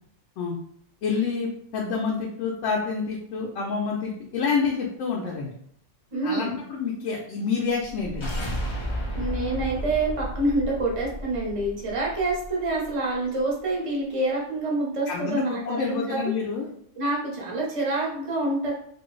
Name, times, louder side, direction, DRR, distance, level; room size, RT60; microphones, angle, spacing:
voice 1, 1.0-5.5 6.2-8.3 15.1-16.7, left 5 dB, 70° left, -3 dB, 0.9 m, -28 dB
voice 2, 6.1-6.6 9.2-16.2 16.9-18.7, right 2 dB, 30° right, -2 dB, 0.7 m, -27 dB
sound 1, 7.8-12.9, equal, 45° left, 0.4 m, -33 dB
3.0 x 2.5 x 3.1 m, 0.68 s
omnidirectional pair, 1.5 m